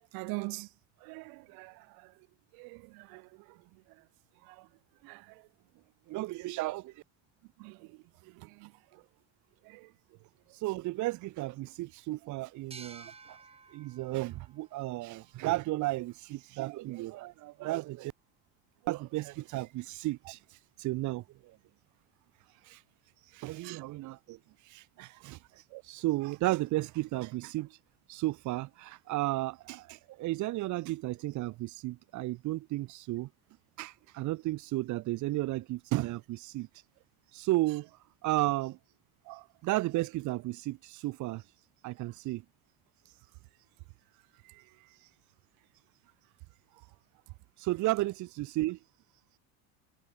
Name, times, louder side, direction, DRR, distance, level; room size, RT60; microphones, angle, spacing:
voice 1, 0.1-0.7 1.0-2.1 2.5-3.6 4.4-4.7 5.0-5.4 7.6-8.0 8.2-9.0 9.6-9.9 16.6-16.8 23.6-23.8 25.7-25.8 39.3-39.5 44.5-44.6, right 31 dB, 75° right, 2.2 m, -44 dB
voice 2, 6.1-6.9 10.5-13.4 13.7-18.1 18.9-20.4 20.8-21.6 22.7-22.8 23.3-24.4 24.7-27.8 28.1-33.3 33.8-36.7 37.3-37.9 38.2-38.8 39.6-41.4 41.8-42.4 47.6-48.8, right 18 dB, 55° right, 2.1 m, -33 dB
sound 1, 12.7-16.1, right 4 dB, 15° right, 7.7 m, -54 dB
cardioid pair, 150°, 36 cm